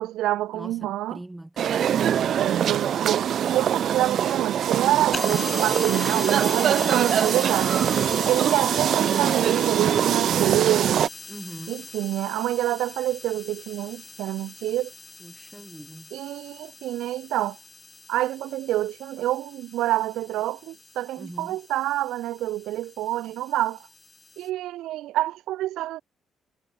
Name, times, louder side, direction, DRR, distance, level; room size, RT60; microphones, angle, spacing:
voice 1, 0.0-1.2 2.4-7.8 8.3-11.0 11.7-14.9 16.1-17.6 18.1-23.8 24.4-26.0, right 15 dB, 90° right, 2.2 m, -27 dB
voice 2, 0.5-2.0 11.3-11.9 15.2-16.1 21.2-21.6, right 1 dB, 10° right, 2.8 m, -42 dB
sound 1, 1.6-11.1, right 9 dB, 65° right, 1.1 m, -23 dB
sound 2, 5.1-24.5, left 4 dB, 30° left, 6.3 m, -40 dB
cardioid pair, 90°, 0 cm